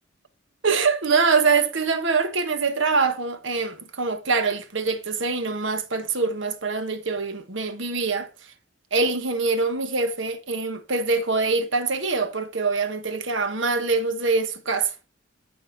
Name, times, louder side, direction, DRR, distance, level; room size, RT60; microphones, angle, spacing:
voice 1, 0.6-8.3 8.9-14.9, right 4 dB, 65° right, 1.4 m, -24 dB
13.0 x 5.6 x 4.5 m
head